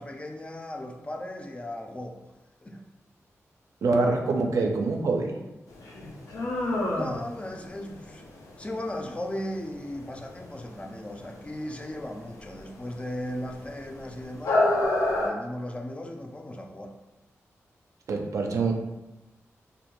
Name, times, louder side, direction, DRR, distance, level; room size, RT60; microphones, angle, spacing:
voice 1, 0.0-2.3 2.6-2.8 6.5-8.2 8.6-17.0, left 1 dB, 20° left, 2 dB, 0.3 m, -37 dB
voice 2, 3.8-5.4 18.1-18.7, right 3 dB, 75° right, 2 dB, 0.4 m, -25 dB
sound 1, 5.7-15.3, left 2 dB, 90° left, 0.4 m, -30 dB
2.4 x 2.2 x 2.9 m, 1.0 s
cardioid pair, 75°, 5 cm